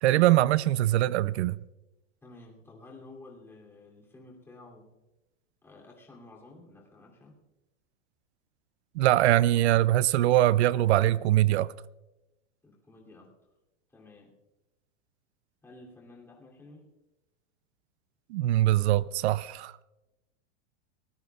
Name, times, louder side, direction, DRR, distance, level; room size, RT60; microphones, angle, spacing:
voice 1, 0.0-1.6 9.0-11.7 18.3-19.7, right 14 dB, 65° right, 0.5 m, -23 dB
voice 2, 2.2-4.9 5.6-7.4 12.6-13.3 13.9-14.3 15.6-16.8, left 2 dB, 5° left, 2.9 m, -51 dB
23.0 x 19.0 x 2.4 m
supercardioid pair, 165°, 35 cm